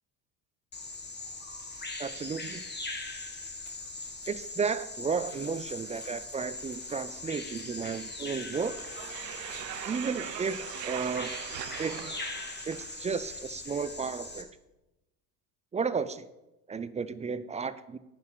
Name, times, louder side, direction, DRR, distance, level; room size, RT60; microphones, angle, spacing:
Bird vocalization bird call bird song, 0.7-14.4, left 3 dB, 20° left, 2.0 m, -41 dB
voice 1, 2.0-2.6 4.3-8.7 9.9-10.6 10.8-11.3 11.8-12.1 12.6-14.5 15.7-16.3 16.7-18.0, right 5 dB, 15° right, 14 dB, 0.4 m, -33 dB
sound 1, 8.5-13.4, right 14 dB, 85° right, 0.6 m, -41 dB
9.5 x 5.8 x 6.6 m, 0.98 s
hypercardioid pair, 70°, 48 cm